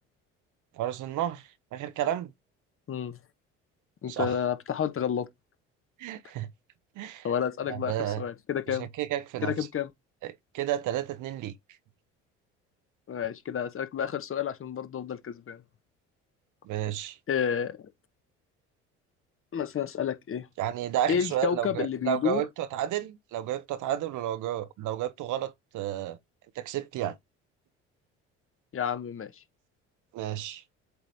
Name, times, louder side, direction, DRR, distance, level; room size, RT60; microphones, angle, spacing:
voice 1, 0.7-2.3 4.1-4.3 6.0-6.5 7.0-7.3 7.7-8.2 8.7-9.7 10.2-11.5 16.6-17.2 20.6-26.2 26.5-27.2 30.1-30.6, right 12 dB, 60° right, 1.0 m, -32 dB
voice 2, 2.9-3.2 4.0-5.3 7.2-8.9 9.5-9.9 13.1-15.6 17.3-17.9 19.5-20.5 21.1-22.4 28.7-29.3, left 8 dB, 40° left, 1.1 m, -30 dB
8.1 x 3.2 x 4.1 m
hypercardioid pair, 65°, 34 cm